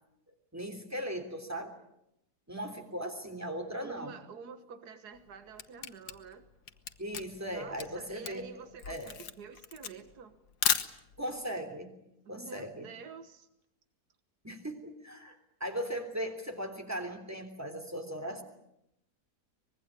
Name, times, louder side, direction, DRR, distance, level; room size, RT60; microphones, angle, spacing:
voice 1, 0.5-1.7 2.5-4.2 7.0-8.5 8.9-9.1 11.2-11.9 12.3-12.9 14.4-15.3 15.6-18.4, equal, 10° right, 5 dB, 3.3 m, -38 dB
voice 2, 3.8-6.5 7.5-10.3 12.3-13.5, right 5 dB, 75° right, 9 dB, 1.9 m, -48 dB
Camera, 5.1-11.4, left 8 dB, 80° left, 1.7 m, -35 dB
24.5 x 21.0 x 8.5 m, 0.83 s
omnidirectional pair, 1.7 m